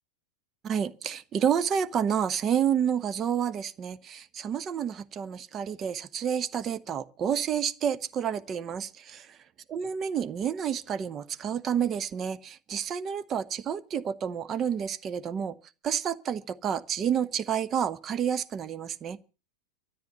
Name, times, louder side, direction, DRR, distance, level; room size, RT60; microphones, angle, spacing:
voice 1, 0.6-9.4 9.7-15.6 15.8-19.2, right 8 dB, 25° right, 1.0 m, -29 dB
13.0 x 10.5 x 7.9 m
figure-of-eight pair, 90°, 0 cm